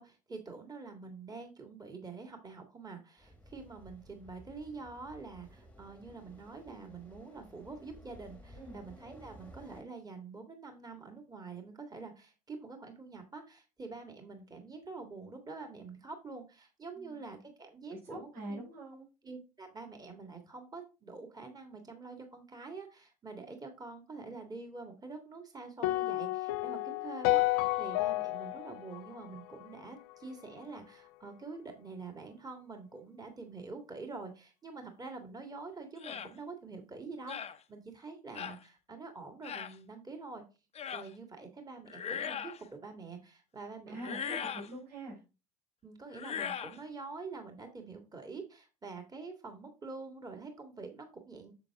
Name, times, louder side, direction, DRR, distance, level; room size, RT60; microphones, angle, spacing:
voice 1, 0.0-18.6 19.2-37.4 37.7-40.4 40.9-44.4 45.8-51.5, right 4 dB, 20° right, 4 dB, 2.0 m, -46 dB
sound 1, 3.2-9.8, equal, 5° left, 1.4 m, -55 dB
voice 2, 17.9-19.1 43.9-45.2, right 1 dB, 70° right, -5 dB, 4.2 m, -44 dB
sound 2, 25.8-30.1, left 18 dB, 65° left, 0.5 m, -31 dB
sound 3, 36.0-36.3 37.3-37.6 38.4-38.6 39.4-39.7 40.8-41.1 41.9-42.6 44.0-44.7 46.1-46.8, left 8 dB, 30° left, 0.8 m, -39 dB
7.1 x 6.8 x 3.6 m, 0.30 s
hypercardioid pair, 70°, 21 cm